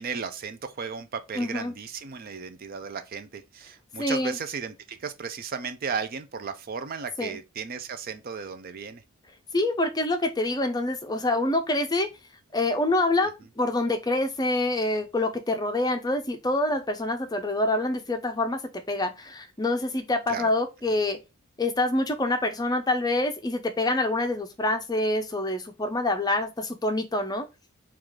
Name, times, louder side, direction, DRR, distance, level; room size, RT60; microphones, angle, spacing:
voice 1, 0.0-9.0 20.3-20.5, right 5 dB, 40° right, 0.4 m, -35 dB
voice 2, 1.3-1.7 4.0-4.4 7.2-7.4 9.5-12.1 12.5-21.2 21.6-27.5, left 2 dB, 15° left, 0.5 m, -26 dB
4.7 x 2.4 x 3.6 m
head